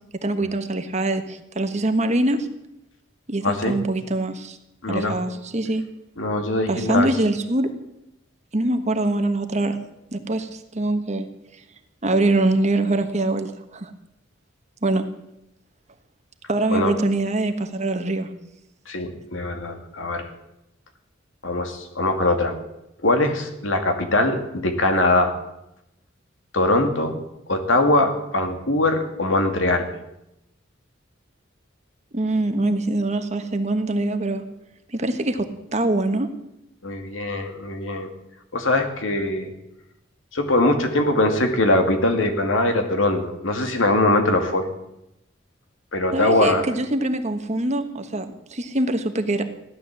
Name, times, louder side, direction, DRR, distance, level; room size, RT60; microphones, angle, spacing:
voice 1, 0.2-2.5 3.3-4.6 4.9-5.8 6.7-7.7 8.5-9.8 10.1-11.3 12.0-13.9 14.8-15.1 16.5-18.3 32.1-34.4 34.9-36.3 46.1-49.4, right 2 dB, 35° right, 7 dB, 1.3 m, -23 dB
voice 2, 3.4-3.8 4.8-5.2 6.2-7.1 16.7-16.9 18.9-20.3 21.4-22.6 23.0-25.4 26.5-27.2 27.5-29.9 36.8-38.1 38.5-39.5 40.3-44.7 45.9-46.6, left 2 dB, 80° left, 5 dB, 2.3 m, -21 dB
16.0 x 11.5 x 7.4 m, 0.86 s
head